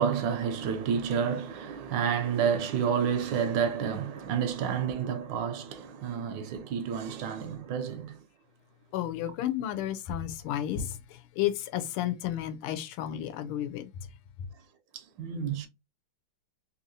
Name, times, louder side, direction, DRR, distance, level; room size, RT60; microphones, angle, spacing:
voice 1, 0.0-8.2 15.2-15.7, right 7 dB, 75° right, 1.1 m, -29 dB
voice 2, 8.9-13.9, left 11 dB, 90° left, 1.5 m, -32 dB
3.5 x 2.7 x 2.6 m
omnidirectional pair, 2.3 m